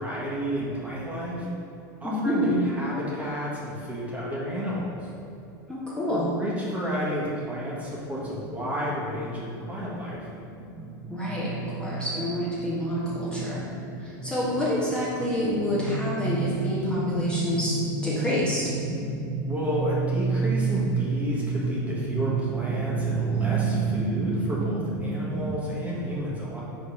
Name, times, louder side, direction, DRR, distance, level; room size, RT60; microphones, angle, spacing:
voice 1, 0.0-1.5 2.0-5.0 6.1-10.2 19.5-26.6, equal, 15° right, -6 dB, 1.4 m, -31 dB
voice 2, 2.0-2.6 5.7-6.3 11.1-13.6 14.0-17.7 18.0-18.7, equal, 10° left, -8 dB, 1.2 m, -27 dB
sound 1, 8.1-25.5, right 4 dB, 85° right, 1.3 m, -30 dB
5.1 x 4.2 x 5.3 m, 2.8 s
supercardioid pair, 130°, 11 cm